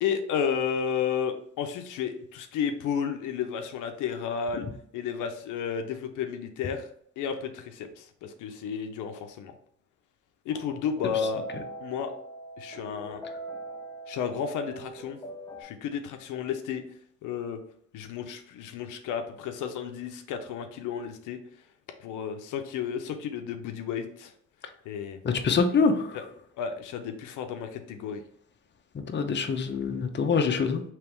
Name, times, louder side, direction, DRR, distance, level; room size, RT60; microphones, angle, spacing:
voice 1, 0.0-4.6 4.9-6.9 7.2-9.5 10.5-11.5 11.8-12.1 12.6-13.2 14.1-15.2 15.6-16.8 17.2-17.6 17.9-21.4 22.0-24.3 24.9-25.2 26.1-26.2 26.6-28.2, left 7 dB, 90° left, 6 dB, 0.6 m, -32 dB
sound 1, 10.5-15.6, right 1 dB, 15° left, 1.2 m, -42 dB
voice 2, 25.2-26.2 29.1-30.8, left 5 dB, 35° left, 6 dB, 0.7 m, -25 dB
3.5 x 3.1 x 4.5 m, 0.66 s
cardioid pair, 90°, 30 cm